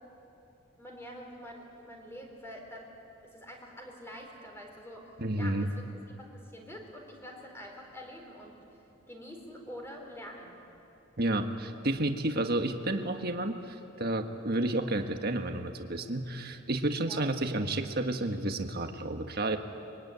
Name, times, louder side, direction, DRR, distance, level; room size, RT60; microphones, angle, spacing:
voice 1, 0.8-2.9 3.2-5.8 6.2-8.5 9.1-10.6 17.0-17.3, equal, 10° left, 1 dB, 4.2 m, -46 dB
voice 2, 5.2-5.7 11.2-19.6, right 1 dB, 50° right, 5 dB, 1.5 m, -31 dB
24.5 x 23.0 x 9.6 m, 2.8 s
head